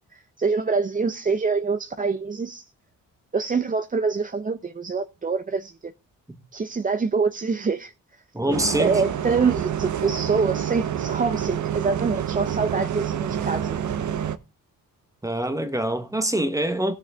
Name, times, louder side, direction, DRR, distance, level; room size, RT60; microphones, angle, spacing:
voice 1, 0.1-2.7 3.3-5.9 6.5-7.9 8.8-13.8, right 4 dB, 25° right, 0.7 m, -25 dB
voice 2, 8.3-9.0 15.2-16.9, right 1 dB, 10° right, 1.2 m, -25 dB
Bus, 8.5-14.4, right 9 dB, 60° right, 1.0 m, -27 dB
16.0 x 6.9 x 3.6 m
cardioid pair, 110°, 33 cm